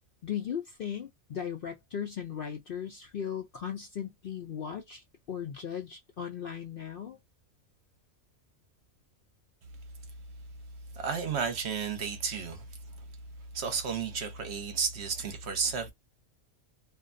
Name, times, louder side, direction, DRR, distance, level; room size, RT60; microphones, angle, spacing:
voice 1, 0.2-7.2, left 8 dB, 65° left, 0.6 m, -37 dB
voice 2, 10.9-12.6 13.0-13.1 13.5-15.9, right 6 dB, 60° right, 0.9 m, -32 dB
2.5 x 2.2 x 2.4 m
omnidirectional pair, 1.4 m